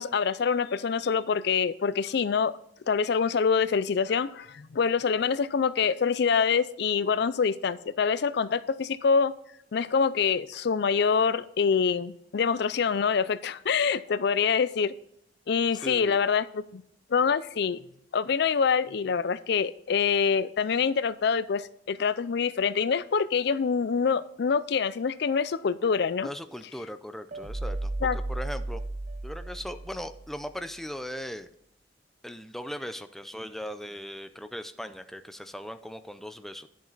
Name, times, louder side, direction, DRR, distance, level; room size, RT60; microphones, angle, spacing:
voice 1, 0.0-2.5 2.9-9.3 9.7-14.9 15.5-16.8 17.1-17.8 18.1-26.3 28.0-28.2, left 6 dB, 65° left, 16 dB, 0.4 m, -25 dB
voice 2, 15.8-16.2 26.2-28.8 29.2-31.5 32.2-36.7, equal, ahead, 9 dB, 0.5 m, -38 dB
sound 1, 27.3-30.5, right 2 dB, 45° right, 0.6 m, -34 dB
10.5 x 7.4 x 4.0 m, 0.74 s
head